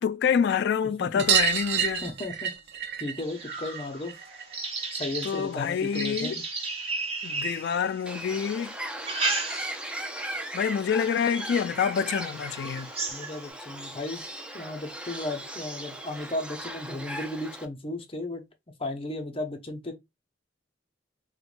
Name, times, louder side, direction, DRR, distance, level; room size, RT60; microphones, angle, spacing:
voice 1, 0.0-2.0 5.2-6.4 7.2-8.7 10.5-12.9, left 7 dB, 60° left, 0.3 m, -27 dB
sound 1, 1.2-6.3 6.6-7.7 9.1-9.2 9.4-9.5 9.8-9.9 11.2-11.3 11.6-11.7 12.0-12.1 13.3-13.4 14.2-14.3, right 8 dB, 60° right, 0.5 m, -30 dB
voice 2, 2.0-2.5 3.0-4.1 4.9-6.4 13.1-14.2 14.5-18.4 18.8-20.0, left 2 dB, 30° left, 0.7 m, -35 dB
sound 2, 3.2-8.2 8.8-10.0 10.4-10.8 11.4-11.5 12.0-12.1 12.4-13.5, right 3 dB, 35° right, 0.9 m, -34 dB
Bird, 8.1-17.7, right 1 dB, 5° right, 0.4 m, -37 dB
4.5 x 2.2 x 2.4 m
head